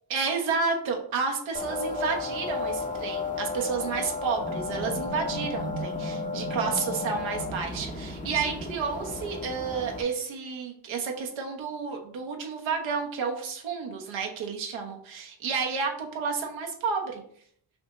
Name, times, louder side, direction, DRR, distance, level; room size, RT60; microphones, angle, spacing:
voice 1, 0.1-17.2, right 5 dB, 85° right, 1 dB, 1.2 m, -31 dB
sound 1, 1.5-10.0, left 2 dB, 15° left, 0.7 m, -33 dB
5.7 x 2.6 x 3.0 m, 0.63 s
cardioid pair, 75°, 46 cm